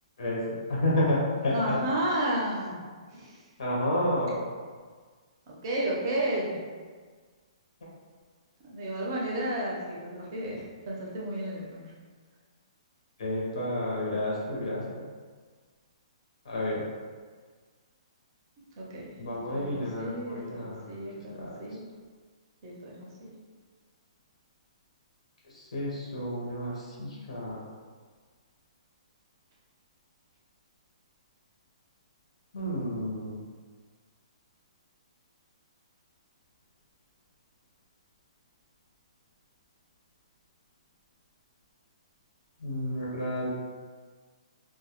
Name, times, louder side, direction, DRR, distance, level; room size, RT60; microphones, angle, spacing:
voice 1, 0.2-1.8 3.6-4.4 13.2-15.0 16.4-16.8 19.2-20.9 21.3-21.5 25.5-27.6 32.5-33.4 42.6-43.5, left 1 dB, 75° left, -5 dB, 0.7 m, -30 dB
voice 2, 1.5-2.8 3.1-3.5 5.6-6.6 8.7-11.8 18.8-20.6 20.9-21.8 22.6-23.3, right 1 dB, 35° right, -4 dB, 0.5 m, -32 dB
2.1 x 2.0 x 2.8 m, 1.5 s
hypercardioid pair, 170°, 4 cm